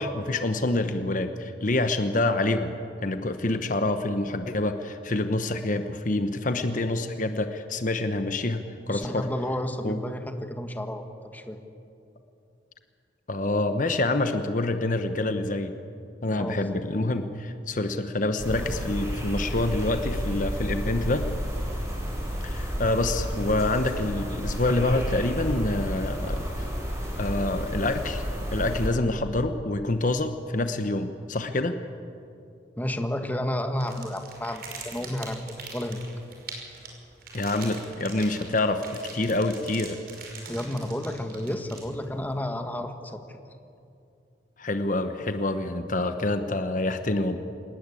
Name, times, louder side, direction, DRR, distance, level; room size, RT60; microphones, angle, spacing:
voice 1, 0.0-2.7 3.0-9.3 9.8-10.0 13.3-15.7 16.2-21.3 22.4-26.7 27.2-28.2 28.5-31.7 37.3-38.8 39.1-40.0 44.6-47.4, left 2 dB, 45° left, 8 dB, 1.1 m, -27 dB
voice 2, 8.9-11.1 11.3-11.6 16.3-16.6 32.8-36.0 40.4-43.4, left 1 dB, 10° left, 6 dB, 1.6 m, -31 dB
sound 1, 18.4-28.9, equal, 15° right, 6.4 m, -31 dB
sound 2, 33.7-42.2, right 4 dB, 55° right, 5.5 m, -43 dB
26.5 x 19.5 x 8.5 m, 2.6 s
head